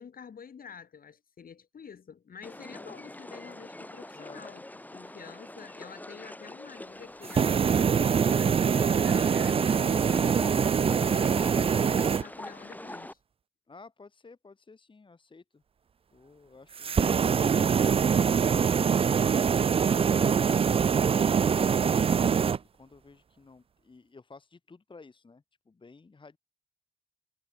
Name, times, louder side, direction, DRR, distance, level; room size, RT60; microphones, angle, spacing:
voice 1, 0.0-4.6 4.9-10.2 10.6-13.2, left 7 dB, 45° left, 4.2 m, -48 dB
sound 1, 2.4-13.1, left 1 dB, 10° left, 3.3 m, -44 dB
voice 2, 4.1-4.4 13.7-15.6 16.1-19.6 22.7-26.4, left 4 dB, 25° left, 1.9 m, -53 dB
sound 2, 7.2-12.2 16.8-22.6, right 6 dB, 30° right, 0.4 m, -24 dB
cardioid pair, 90°, 20 cm